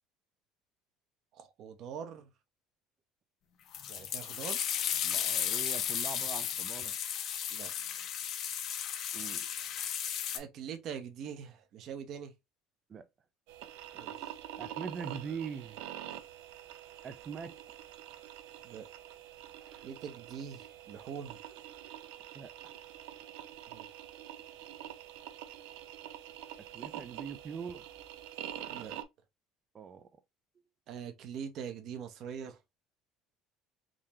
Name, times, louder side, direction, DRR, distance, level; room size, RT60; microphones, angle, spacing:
voice 1, 1.3-2.3 3.9-4.8 7.5-7.7 10.3-12.3 13.9-14.4 18.6-18.9 19.8-21.4 23.7-23.9 28.7-29.0 30.9-32.6, right 7 dB, 45° right, 0.8 m, -43 dB
sound 1, 3.7-10.4, left 9 dB, 45° left, 0.6 m, -34 dB
voice 2, 5.0-7.0 9.1-9.5 12.9-13.1 14.6-15.8 17.0-17.5 19.6-19.9 22.3-22.7 26.6-27.8 29.7-30.1, right 6 dB, 25° right, 0.4 m, -42 dB
sound 2, 13.5-29.0, right 12 dB, 85° right, 0.5 m, -46 dB
3.8 x 2.8 x 3.0 m
cardioid pair, 160°, 0 cm